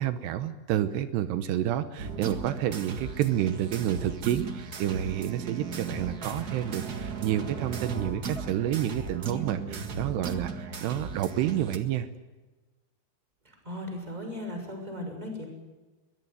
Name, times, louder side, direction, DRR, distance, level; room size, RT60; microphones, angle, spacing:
voice 1, 0.0-12.1, right 11 dB, 85° right, 11 dB, 3.1 m, -29 dB
sound 1, 2.0-11.8, right 5 dB, 65° right, 0.9 m, -36 dB
voice 2, 13.4-15.5, left 1 dB, 10° right, 4 dB, 6.1 m, -37 dB
23.0 x 21.0 x 9.5 m, 1.2 s
omnidirectional pair, 4.8 m